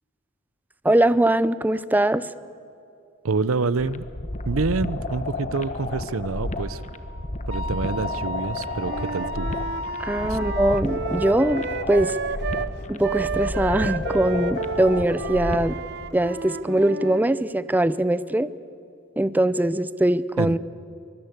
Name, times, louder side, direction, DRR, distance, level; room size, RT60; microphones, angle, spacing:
voice 1, 0.8-2.2 10.0-12.2 12.9-15.8 16.1-18.5 19.2-20.6, right 1 dB, 10° right, 15 dB, 0.5 m, -22 dB
voice 2, 3.2-4.0 4.5-6.8 7.5-9.5 10.3-10.4 20.4-20.6, right 4 dB, 90° right, 17 dB, 0.7 m, -27 dB
sound 1, 3.8-15.8, left 2 dB, 35° left, 1.2 m, -31 dB
Wind instrument woodwind instrument, 6.5-10.9, left 1 dB, 80° left, 1.3 m, -35 dB
Wind instrument woodwind instrument 2, 8.8-12.7 13.0-17.3, right 4 dB, 55° right, 0.8 m, -31 dB
23.5 x 21.5 x 8.1 m, 2.5 s
head